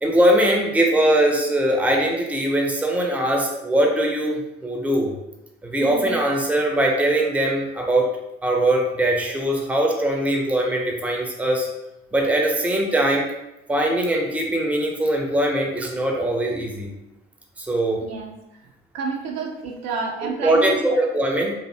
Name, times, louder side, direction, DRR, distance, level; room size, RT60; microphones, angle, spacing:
voice 1, 0.0-5.1 5.6-8.1 8.4-11.7 12.1-13.3 13.7-16.9 17.6-18.1 20.2-21.5, right 1 dB, 5° right, 0 dB, 0.5 m, -21 dB
voice 2, 5.8-6.1 18.0-18.4 18.9-21.0, right 4 dB, 60° right, 0 dB, 0.5 m, -29 dB
2.5 x 2.1 x 2.7 m, 0.91 s
figure-of-eight pair, 40°, 30 cm